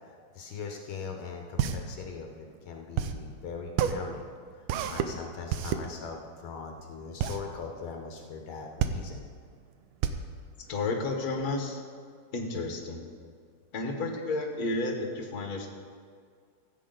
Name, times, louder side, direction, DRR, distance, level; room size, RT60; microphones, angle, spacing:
voice 1, 0.3-4.3 4.6-9.3, left 5 dB, 75° left, 2 dB, 1.7 m, -40 dB
sound 1, 1.1-11.4, right 9 dB, 80° right, 1.5 m, -31 dB
voice 2, 10.7-11.8 12.3-13.0 13.7-15.7, left 2 dB, 50° left, 2 dB, 1.7 m, -31 dB
14.5 x 8.3 x 3.9 m, 2.1 s
omnidirectional pair, 2.3 m